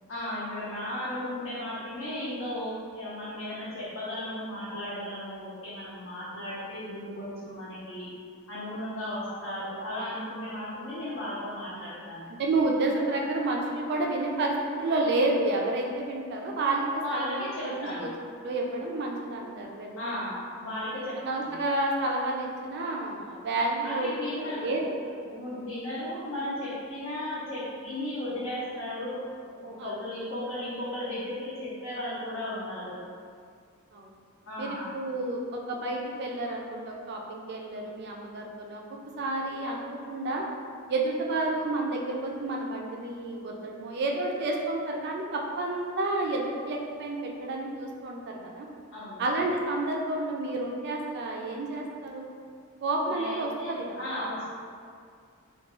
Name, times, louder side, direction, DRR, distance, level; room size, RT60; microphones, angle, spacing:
voice 1, 0.1-8.1 8.5-12.3 17.0-18.1 20.0-21.6 23.8-24.8 25.3-29.2 29.6-33.0 34.5-34.9 48.9-49.3 53.1-54.5, left 1 dB, 60° left, -10 dB, 0.5 m, -35 dB
voice 2, 12.3-20.3 21.2-24.8 25.2-25.6 29.8-30.0 33.9-34.1 34.6-38.8 39.2-40.4 40.9-48.7 49.2-52.3 52.8-54.0, right 2 dB, 50° right, 0 dB, 0.3 m, -30 dB
2.4 x 2.2 x 2.9 m, 2.2 s
head